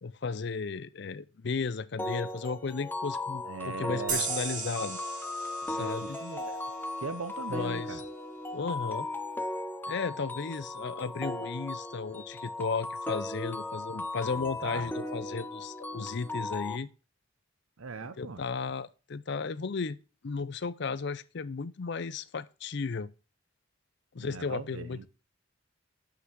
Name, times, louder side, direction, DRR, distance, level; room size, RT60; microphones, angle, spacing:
voice 1, 0.0-5.0 5.7-6.2 7.5-8.0 8.5-9.1 9.9-16.9 18.2-20.0 20.2-23.1 24.1-25.1, left 4 dB, 55° left, 0.5 m, -34 dB
sound 1, 2.0-16.8, left 2 dB, 10° left, 0.5 m, -37 dB
voice 2, 3.4-4.3 5.6-6.6 7.0-8.0 14.4-14.9 17.8-18.4 24.2-25.1, right 4 dB, 85° right, 0.8 m, -40 dB
sound 2, 4.1-7.4, right 4 dB, 40° right, 2.3 m, -37 dB
6.0 x 5.9 x 6.1 m
head